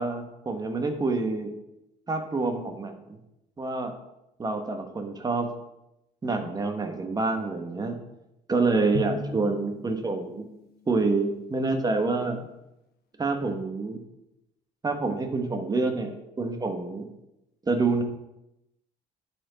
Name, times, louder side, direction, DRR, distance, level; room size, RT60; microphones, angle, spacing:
voice 1, 0.0-1.5 2.1-3.2 3.6-3.9 4.4-5.5 6.2-8.0 8.5-10.5 10.9-12.5 13.2-14.0 14.8-17.1 17.7-18.0, right 3 dB, 25° right, 6 dB, 1.1 m, -27 dB
Drum, 8.9-11.1, left 4 dB, 65° left, 1.0 m, -38 dB
11.0 x 4.5 x 4.0 m, 0.89 s
cardioid pair, 110°, 17 cm